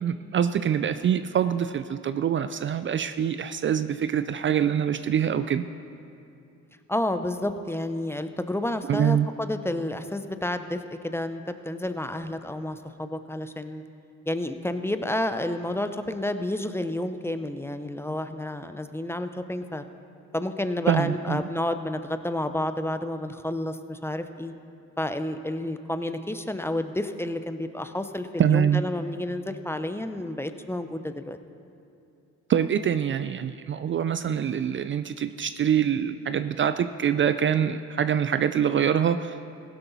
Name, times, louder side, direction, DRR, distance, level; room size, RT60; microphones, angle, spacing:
voice 1, 0.0-5.6 8.9-9.3 20.9-21.4 28.4-28.8 32.5-39.5, right 8 dB, 40° right, 11 dB, 0.4 m, -24 dB
voice 2, 6.9-13.8 14.3-19.8 20.3-24.5 25.0-31.4, left 1 dB, 10° left, 9 dB, 0.6 m, -30 dB
16.0 x 11.5 x 4.1 m, 2.6 s
cardioid pair, 90°, 30 cm